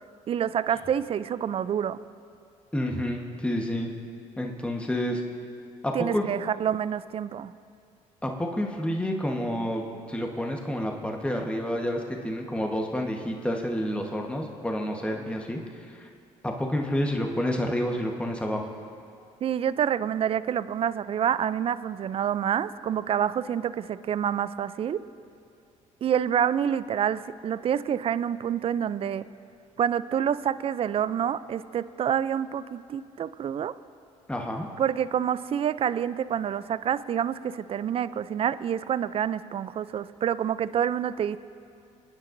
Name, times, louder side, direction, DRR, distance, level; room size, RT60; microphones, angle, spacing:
voice 1, 0.3-2.0 5.9-7.5 19.4-25.0 26.0-29.3 29.8-33.7 34.8-41.4, right 9 dB, 45° right, 16 dB, 0.4 m, -27 dB
voice 2, 2.7-3.9 4.4-5.2 5.8-6.2 8.2-9.8 10.1-15.6 15.9-16.1 16.4-18.7 34.3-34.7, equal, 10° left, 1 dB, 1.2 m, -29 dB
25.0 x 9.8 x 2.6 m, 2.4 s
supercardioid pair, 75°, 14 cm